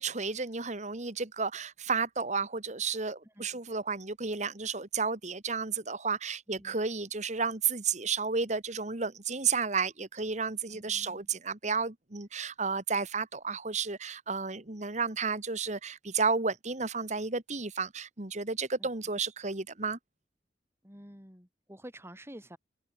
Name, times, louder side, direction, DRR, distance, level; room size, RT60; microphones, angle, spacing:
voice 1, 0.0-20.0, right 5 dB, 40° right, 1.7 m, -32 dB
voice 2, 3.2-3.6 6.5-6.8 10.7-11.3 18.8-18.9 20.8-22.6, equal, 15° right, 7.7 m, -50 dB
head